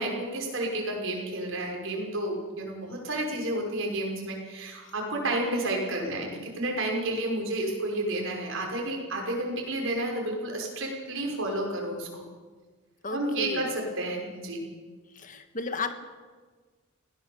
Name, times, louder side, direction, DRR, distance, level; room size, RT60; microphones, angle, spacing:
voice 1, 0.0-12.1 13.1-14.6, right 1 dB, 65° right, 0 dB, 5.6 m, -31 dB
voice 2, 13.0-13.7 15.1-15.9, left 3 dB, 40° left, 8 dB, 1.6 m, -34 dB
22.0 x 17.0 x 7.1 m, 1.4 s
head